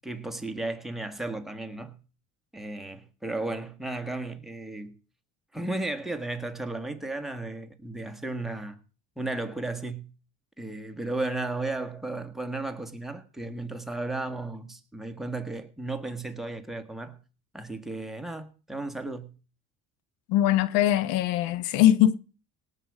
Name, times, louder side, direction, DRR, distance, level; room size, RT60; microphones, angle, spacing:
voice 1, 0.0-2.0 2.5-5.0 5.5-8.8 9.2-10.1 10.6-17.2 17.5-19.3, right 2 dB, ahead, 1.6 m, -34 dB
voice 2, 20.3-22.1, left 12 dB, 85° left, 1.0 m, -21 dB
18.0 x 6.9 x 4.9 m
cardioid pair, 110°, 34 cm